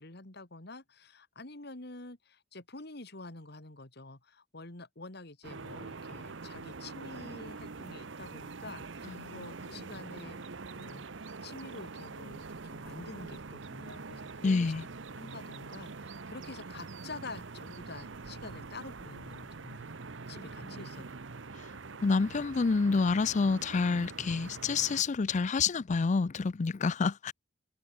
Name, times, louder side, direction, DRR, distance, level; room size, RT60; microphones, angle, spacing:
voice 1, 0.0-10.4 10.7-14.9 15.2-19.9 20.3-21.2, left 2 dB, 60° left, 2.7 m, -48 dB
sound 1, 5.4-25.0, right 4 dB, 85° right, 1.0 m, -44 dB
voice 2, 9.1-9.4 14.4-14.8 20.6-20.7 22.0-27.3, left 4 dB, 40° left, 0.4 m, -28 dB
head